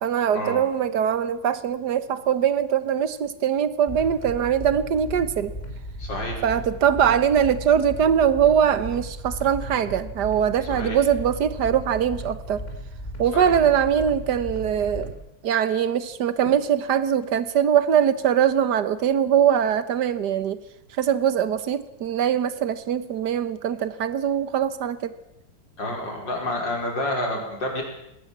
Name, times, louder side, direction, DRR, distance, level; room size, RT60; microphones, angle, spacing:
voice 1, 0.0-5.5 6.4-12.6 13.2-15.1 15.4-20.6 21.0-25.1, right 8 dB, 60° right, 14 dB, 1.6 m, -22 dB
sound 1, 3.9-15.1, equal, 20° left, 3.9 m, -36 dB
voice 2, 6.0-6.4 10.7-11.0 13.3-13.5 25.8-27.8, left 1 dB, 65° left, 1 dB, 5.8 m, -29 dB
20.5 x 18.0 x 7.4 m, 0.83 s
omnidirectional pair, 2.1 m